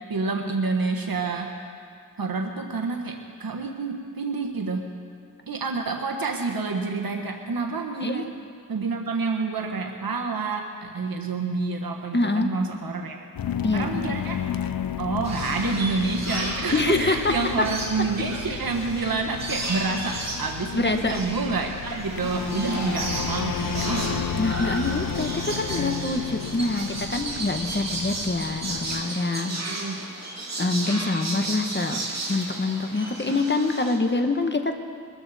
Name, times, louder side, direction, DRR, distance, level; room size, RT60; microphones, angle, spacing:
voice 1, 0.1-1.5 2.2-4.9 5.5-8.3 8.7-13.2 13.7-14.4 15.0-24.3 29.5-30.1, right 4 dB, 85° right, 2 dB, 1.2 m, -28 dB
voice 2, 12.1-12.5 13.6-14.0 16.7-17.4 20.7-21.2 24.4-29.7 30.6-32.0 32.3-34.7, left 2 dB, 30° left, 6 dB, 1.2 m, -25 dB
sound 1, 13.4-29.0, left 7 dB, 80° left, 0.5 m, -32 dB
sound 2, 15.2-34.0, right 2 dB, 50° right, 2.5 m, -34 dB
22.5 x 13.5 x 4.2 m, 2.2 s
wide cardioid pair, 65°, 34 cm